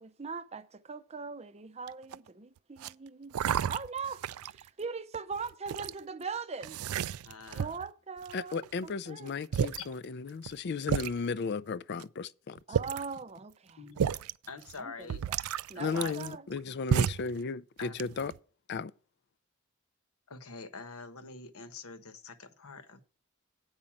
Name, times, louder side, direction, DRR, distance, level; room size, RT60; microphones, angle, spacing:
voice 1, 0.0-3.4 3.7-6.8 7.5-9.3 9.6-9.7 12.7-13.8 14.8-15.4 15.7-16.4, right 5 dB, 30° right, 0.6 m, -41 dB
sound 1, 1.9-2.3 2.8-2.9 3.3-4.6 5.1-5.9 6.6-7.9 8.3-8.8 9.3-9.4 9.5-9.8 10.5-10.6 10.9-11.1 12.0-12.1 12.6-13.1 14.0-14.3 14.7-14.8 15.1-16.6 16.9-17.3 17.8-18.4, right 8 dB, 75° right, 0.3 m, -31 dB
voice 2, 7.2-7.8 9.8-9.9 13.8-14.1 14.5-15.3 15.7-16.2 17.8-18.2 20.3-23.0, left 4 dB, 70° left, 1.1 m, -45 dB
voice 3, 8.3-12.6 15.8-18.3 18.7-18.9, left 4 dB, 50° left, 0.4 m, -35 dB
8.8 x 5.4 x 7.1 m
head